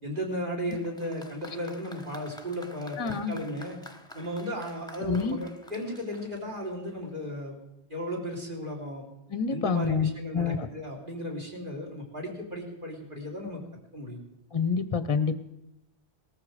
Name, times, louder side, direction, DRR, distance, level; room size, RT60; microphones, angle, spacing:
voice 1, 0.0-3.8 4.1-7.6 7.9-9.1 9.5-13.6 13.9-14.2, equal, 50° right, 1 dB, 3.7 m, -35 dB
Applause, 0.7-7.1, left 1 dB, 5° left, 1.1 m, -50 dB
voice 2, 3.0-3.4 5.0-5.4 9.3-10.7 14.5-15.3, left 5 dB, 30° left, 11 dB, 0.7 m, -27 dB
18.5 x 14.0 x 5.0 m, 0.89 s
omnidirectional pair, 1.1 m